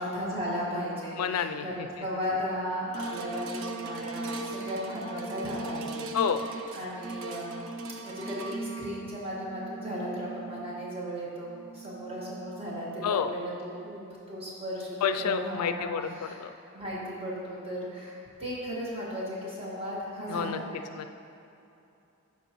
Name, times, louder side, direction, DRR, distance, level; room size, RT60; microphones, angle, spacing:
voice 1, 0.0-6.0 6.5-7.7 8.0-16.4 16.7-20.8, equal, 25° right, -6 dB, 1.5 m, -36 dB
voice 2, 1.2-1.7 6.1-6.5 13.0-13.3 15.0-16.0 16.4-16.5 20.3-20.6 21.0-21.1, left 7 dB, 85° left, 10 dB, 0.3 m, -28 dB
sound 1, 2.9-13.3 13.9-14.0, right 3 dB, 60° right, 0.5 m, -39 dB
12.0 x 4.6 x 3.0 m, 2.7 s
head